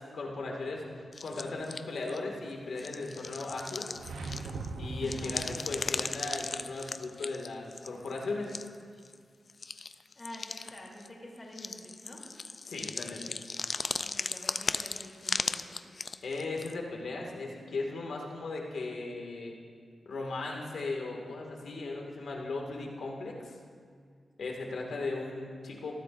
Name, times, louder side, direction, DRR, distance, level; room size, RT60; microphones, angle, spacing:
voice 1, 0.0-3.9 4.8-8.5 12.6-13.4 16.2-19.5 20.1-23.6 24.4-25.9, left 3 dB, 80° left, 0 dB, 1.9 m, -37 dB
sound 1, 1.1-2.2 2.8-4.7 5.0-8.2 8.5-8.8 9.0-9.1 9.5-11.1 11.5-16.7, left 4 dB, 40° left, 0.3 m, -37 dB
sound 2, 3.9-6.2, right 3 dB, 80° right, 0.7 m, -40 dB
voice 2, 5.0-5.6 10.1-12.2 14.0-15.8, left 1 dB, 25° left, -4 dB, 3.0 m, -47 dB
19.5 x 14.0 x 2.5 m, 2.1 s
wide cardioid pair, 135°, 0 cm